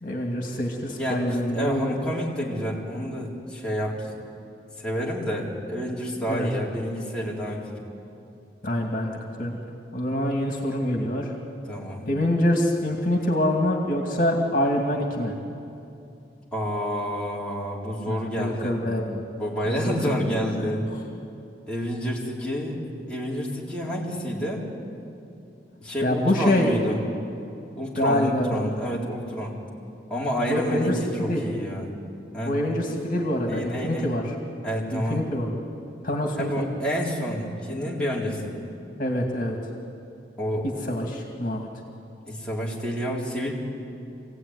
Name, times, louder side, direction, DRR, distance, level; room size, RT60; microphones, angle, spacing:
voice 1, 0.0-2.0 6.3-6.5 8.6-9.6 9.9-11.3 12.1-15.3 18.0-19.2 19.6-20.1 20.5-20.7 26.0-26.7 28.0-28.5 30.5-31.4 32.5-34.2 34.9-35.5 36.0-36.7 39.0-39.6 40.9-41.7, left 1 dB, 50° left, 1 dB, 2.4 m, -25 dB
voice 2, 0.9-1.2 1.5-4.1 4.8-7.8 11.7-12.1 16.5-18.7 19.4-20.8 21.7-22.8 23.1-24.6 25.8-27.0 27.7-29.6 30.1-31.9 32.3-32.5 33.4-34.1 34.6-35.2 36.4-38.6 40.4-40.7 42.3-43.5, equal, 5° left, -6 dB, 4.0 m, -29 dB
25.5 x 17.0 x 9.8 m, 2.7 s
head